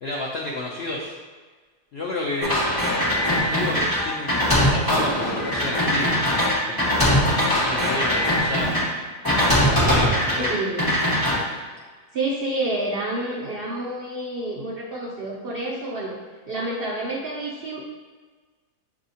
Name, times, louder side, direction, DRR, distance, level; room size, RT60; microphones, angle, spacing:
voice 1, 0.0-1.2 1.9-2.6 3.3-6.2 6.7-8.7 9.5-10.6, left 2 dB, 85° left, -3 dB, 0.5 m, -31 dB
sound 1, 2.4-8.8 9.2-10.5 10.8-11.3, equal, 15° left, 1.1 m, -21 dB
voice 2, 10.5-11.0 12.1-16.1 16.5-17.8, right 2 dB, 75° right, -4 dB, 0.5 m, -29 dB
6.9 x 2.8 x 2.7 m, 1.4 s
omnidirectional pair, 1.7 m